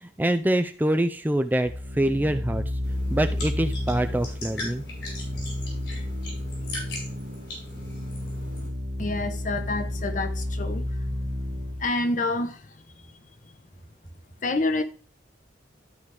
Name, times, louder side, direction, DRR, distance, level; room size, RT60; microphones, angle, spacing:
voice 1, 0.0-2.6 3.1-4.8, right 1 dB, 10° right, 0.4 m, -25 dB
sound 1, 1.6-11.9, left 1 dB, 75° right, 1.8 m, -31 dB
sound 2, 2.8-8.7, left 2 dB, 90° left, 5.1 m, -40 dB
voice 2, 9.0-11.2 11.5-12.7 14.4-14.8, left 2 dB, 45° left, 0.9 m, -28 dB
13.0 x 4.9 x 3.4 m
head